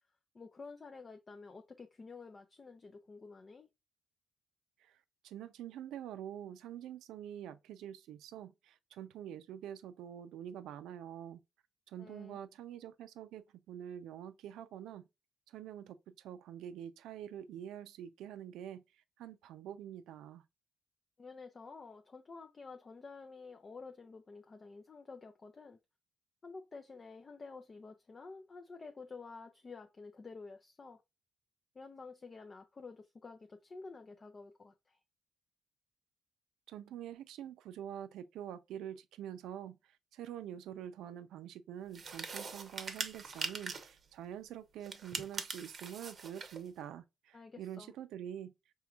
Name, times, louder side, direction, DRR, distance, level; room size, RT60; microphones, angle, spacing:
voice 1, 0.3-3.7 12.0-12.4 21.2-25.8 26.4-31.0 31.7-35.0 47.3-47.9, left 4 dB, 35° left, 0.5 m, -50 dB
voice 2, 5.2-11.4 11.9-15.0 15.5-18.8 19.2-20.4 36.7-39.8 40.1-48.5, right 10 dB, 85° right, 0.4 m, -46 dB
sound 1, 41.9-44.0 44.8-46.6, right 5 dB, 45° right, 0.7 m, -42 dB
4.5 x 3.1 x 2.3 m
cardioid pair, 90°, 0 cm